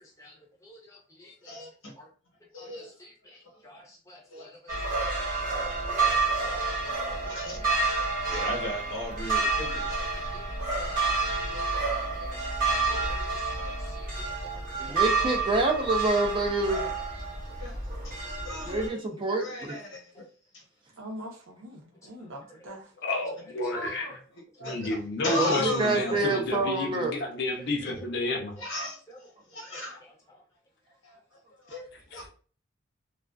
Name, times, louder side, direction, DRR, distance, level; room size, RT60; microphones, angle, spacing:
voice 1, 0.0-1.6 2.0-2.1 2.6-5.1 5.5-7.7 8.0-8.1 8.3-8.5 10.3-12.4 13.0-15.0 18.9-19.0 22.3-22.7 23.1-23.2 23.7-24.0 27.6-27.7 28.6-28.7 29.1-29.2 29.7-30.4, left 1 dB, 15° left, 0.6 m, -52 dB
voice 2, 1.4-1.9 2.5-2.9 4.3-4.5 6.1-6.6 6.9-7.0 7.2-7.6 8.0-10.1 14.8-14.9 16.2-16.3 17.5-17.8 18.0-18.1 18.4-19.0 19.4-20.2 22.2-22.3 24.6-25.0 25.2-26.2 28.6-30.0 31.0-31.2 31.5-32.3, left 1 dB, 75° left, 1.0 m, -36 dB
sound 1, 4.7-18.9, right 3 dB, 45° right, 0.9 m, -29 dB
voice 3, 14.8-16.9 18.6-19.8 25.4-27.1, right 2 dB, 25° right, 0.4 m, -27 dB
voice 4, 21.0-22.9 23.7-24.1, right 1 dB, 80° right, 0.7 m, -42 dB
voice 5, 23.0-24.1 24.6-28.6 32.1-32.2, left 2 dB, 55° left, 0.6 m, -31 dB
2.3 x 2.3 x 2.3 m
head